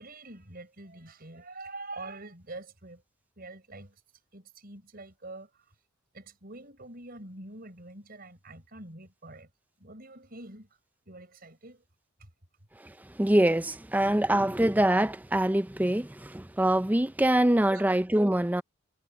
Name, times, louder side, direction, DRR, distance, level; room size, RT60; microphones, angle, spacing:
voice 1, 0.0-3.0 3.4-4.0 4.3-5.6 6.1-9.5 9.8-10.7 11.1-11.8 12.2-12.3 17.7-18.0, right 2 dB, 45° right, 4.7 m, -45 dB
voice 2, 12.8-18.6, right 1 dB, 10° right, 0.5 m, -24 dB
head